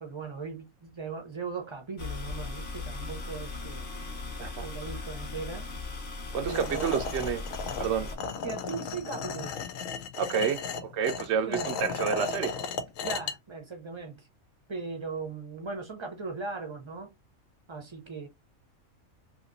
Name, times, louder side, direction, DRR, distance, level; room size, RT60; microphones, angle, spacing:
voice 1, 0.0-3.9 4.6-5.7 6.4-6.8 8.4-9.7 11.5-11.7 13.0-14.3 14.7-17.1 17.7-18.3, right 4 dB, 30° right, 0.6 m, -38 dB
sound 1, 2.0-8.2, left 3 dB, 45° left, 1.0 m, -38 dB
voice 2, 6.3-7.4 7.8-8.1 10.1-12.5, right 7 dB, 65° right, 0.8 m, -29 dB
sound 2, 6.5-13.3, left 5 dB, 75° left, 1.0 m, -35 dB
2.9 x 2.8 x 2.5 m
omnidirectional pair, 1.4 m